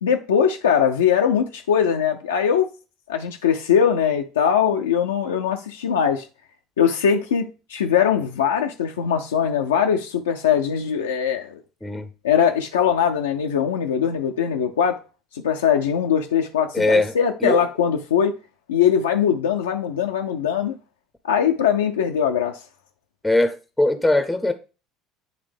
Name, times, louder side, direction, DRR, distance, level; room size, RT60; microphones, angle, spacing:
voice 1, 0.0-2.7 3.1-6.3 6.8-11.6 12.2-15.0 15.3-18.3 18.7-20.8 21.2-22.6, left 8 dB, 85° left, 0.4 m, -21 dB
voice 2, 16.7-17.1 17.4-17.6 23.2-24.5, left 2 dB, 5° left, 0.6 m, -20 dB
9.0 x 3.3 x 3.3 m
hypercardioid pair, 65°, 0 cm